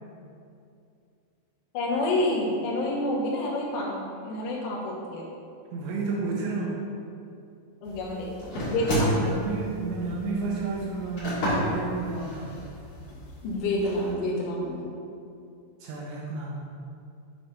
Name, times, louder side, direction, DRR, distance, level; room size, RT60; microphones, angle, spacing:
voice 1, 1.8-5.2 7.8-9.2 13.4-14.9, left 1 dB, 85° left, -4 dB, 3.5 m, -28 dB
voice 2, 5.7-6.9 9.1-12.7 15.8-16.7, right 3 dB, 80° right, -2 dB, 2.6 m, -31 dB
sound 1, 7.8-14.1, equal, 60° left, 1.5 m, -32 dB
8.5 x 3.3 x 5.2 m, 2.5 s
omnidirectional pair, 5.5 m